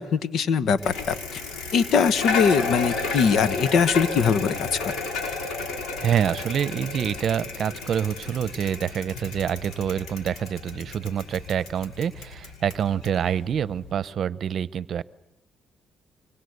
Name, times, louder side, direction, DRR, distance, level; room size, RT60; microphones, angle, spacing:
voice 1, 0.0-1.4 1.7-4.9, left 6 dB, 70° left, 14 dB, 1.2 m, -22 dB
Bicycle, 0.8-13.9, left 4 dB, 90° left, 5.8 m, -33 dB
voice 2, 6.0-15.0, right 8 dB, 60° right, 17 dB, 0.8 m, -26 dB
25.0 x 23.0 x 8.1 m, 0.87 s
cardioid pair, 90°, 0 cm